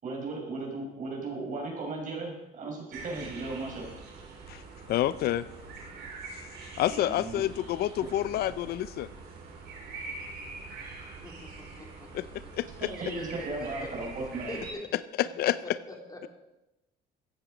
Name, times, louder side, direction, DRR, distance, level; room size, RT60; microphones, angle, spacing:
voice 1, 0.0-3.8 6.9-7.4 12.8-14.6, right 2 dB, 50° right, 0 dB, 5.7 m, -36 dB
sound 1, 2.9-14.7, right 4 dB, 70° right, 3.7 m, -44 dB
voice 2, 4.9-5.4 6.8-9.1 12.1-12.2 12.6-12.9 15.2-15.6, left 13 dB, 70° left, 16 dB, 0.5 m, -28 dB
voice 3, 11.2-12.5 13.1-13.9 14.5-14.8 15.4-16.2, left 2 dB, 20° left, 2 dB, 2.8 m, -44 dB
15.0 x 10.5 x 5.1 m, 0.95 s
cardioid pair, 110°, 17 cm